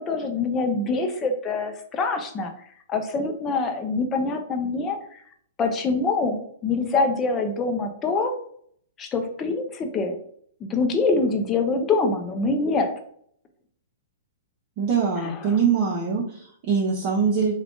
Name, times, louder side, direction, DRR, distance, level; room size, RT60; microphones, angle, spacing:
voice 1, 0.0-2.5 2.9-5.2 5.6-8.3 9.0-10.2 10.6-12.9 15.2-15.4, left 3 dB, 20° left, 5 dB, 0.6 m, -25 dB
voice 2, 14.8-17.6, right 6 dB, 45° right, -4 dB, 0.8 m, -23 dB
3.4 x 2.4 x 3.7 m, 0.63 s
hypercardioid pair, 135°, 0 cm